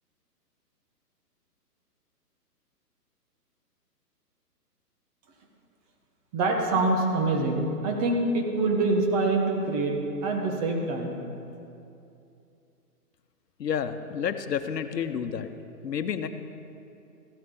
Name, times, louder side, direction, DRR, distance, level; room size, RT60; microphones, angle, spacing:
voice 1, 6.3-9.9 10.2-11.2, right 2 dB, 25° right, 1 dB, 1.4 m, -25 dB
voice 2, 13.6-15.5 15.8-16.3, left 7 dB, 80° left, 9 dB, 1.1 m, -30 dB
15.5 x 12.5 x 3.9 m, 2.7 s
hypercardioid pair, 155°, 48 cm